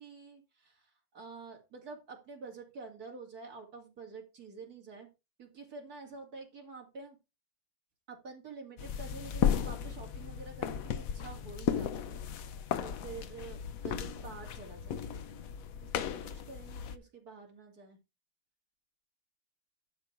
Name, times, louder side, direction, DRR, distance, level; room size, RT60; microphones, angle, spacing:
voice 1, 0.0-5.1 5.4-7.2 8.1-12.2 12.8-15.2 15.8-18.0, right 4 dB, 45° right, 1 dB, 2.9 m, -48 dB
sound 1, 8.8-17.0, left 8 dB, 70° left, 0.8 m, -35 dB
11.5 x 5.2 x 4.5 m, 0.27 s
omnidirectional pair, 2.3 m